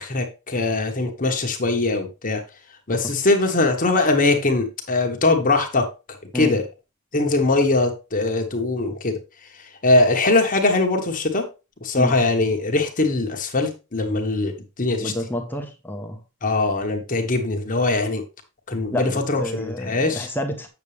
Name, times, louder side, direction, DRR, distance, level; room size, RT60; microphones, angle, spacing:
voice 1, 0.0-2.4 2.9-5.8 6.3-6.6 7.1-9.1 9.8-11.4 11.8-14.5 14.8-15.1 16.4-18.2 18.7-20.3, left 2 dB, 35° left, 3 dB, 1.2 m, -21 dB
voice 2, 15.0-16.2 18.9-20.7, left 1 dB, 10° left, 4 dB, 0.9 m, -29 dB
8.1 x 7.0 x 3.3 m, 0.29 s
head